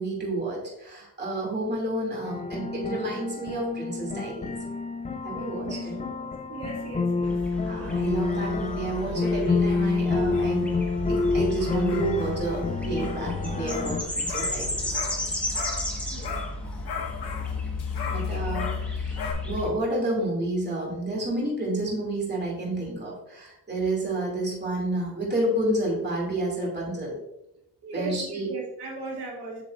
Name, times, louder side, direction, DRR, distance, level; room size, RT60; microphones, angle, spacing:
voice 1, 0.0-4.6 5.2-6.0 7.6-10.8 11.1-15.0 18.1-19.2 19.4-27.2 27.9-28.5, right 1 dB, 25° right, -3 dB, 2.4 m, -30 dB
sound 1, 2.2-14.0, left 4 dB, 20° left, 0.4 m, -28 dB
voice 2, 6.5-7.4 7.8-7.9 16.1-16.5 27.8-29.6, right 3 dB, 80° right, -3 dB, 2.1 m, -37 dB
sound 2, 7.2-19.7, left 2 dB, 5° left, 1.3 m, -33 dB
sound 3, 8.9-16.0 16.2-19.3, left 5 dB, 85° left, 1.2 m, -39 dB
8.2 x 6.4 x 2.5 m, 0.86 s
wide cardioid pair, 150°, 39 cm